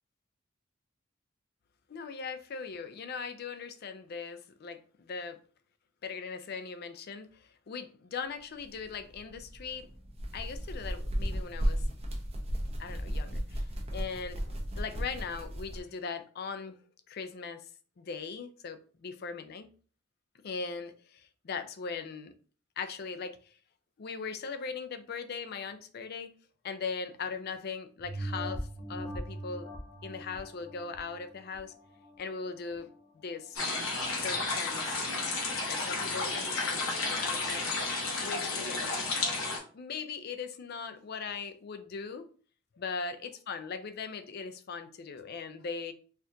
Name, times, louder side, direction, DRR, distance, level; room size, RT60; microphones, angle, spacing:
voice 1, 1.9-4.8 5.1-5.4 6.0-9.9 10.3-11.8 12.8-13.7 13.9-16.8 17.1-17.7 18.0-19.7 20.4-22.3 22.8-23.5 24.0-26.3 26.6-29.7 30.0-31.7 32.2-32.9 33.2-33.6 34.2-35.0 35.7-37.6 38.2-38.9 39.7-42.2 42.8-45.9, left 5 dB, 50° left, 0.4 m, -39 dB
sound 1, 8.6-15.8, equal, 30° right, 0.7 m, -35 dB
sound 2, 28.0-32.9 33.4-33.5, equal, 15° left, 0.8 m, -41 dB
sound 3, 33.5-39.6, left 3 dB, 85° left, 1.0 m, -32 dB
4.3 x 2.4 x 2.6 m
head